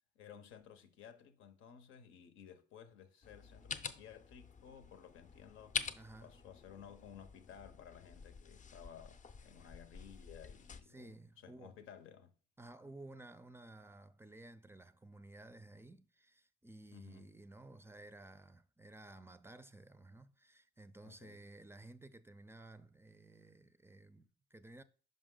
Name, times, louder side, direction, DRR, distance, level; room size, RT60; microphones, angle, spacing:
voice 1, 0.1-12.3 16.9-17.3 21.0-21.4, left 8 dB, 85° left, 0.8 m, -56 dB
sound 1, 3.2-10.8, left 5 dB, 40° left, 0.6 m, -47 dB
voice 2, 6.0-6.3 10.9-11.8 12.6-24.8, right 2 dB, 10° right, 0.4 m, -55 dB
5.4 x 5.2 x 3.7 m
cardioid pair, 90°, 20 cm